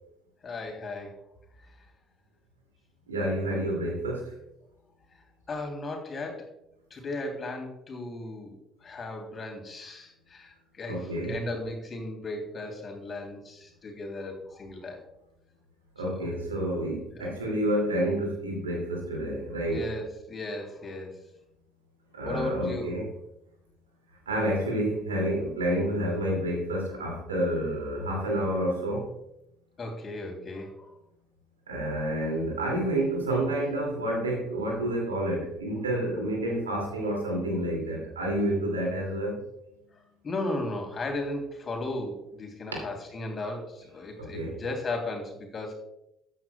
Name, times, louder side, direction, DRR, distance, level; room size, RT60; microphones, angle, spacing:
voice 1, 0.4-1.2 1.6-1.9 5.5-6.5 6.9-15.0 16.0-16.5 17.1-17.4 19.7-21.2 22.2-22.9 29.8-31.0 31.9-32.0 39.9-45.7, left 2 dB, 40° left, 3 dB, 3.1 m, -36 dB
voice 2, 3.1-4.3 10.9-11.3 16.0-19.8 22.1-23.0 24.3-29.1 31.7-39.4 44.2-44.6, right 1 dB, 90° right, -1 dB, 2.5 m, -29 dB
13.5 x 9.3 x 2.3 m, 0.83 s
hypercardioid pair, 55°, 0 cm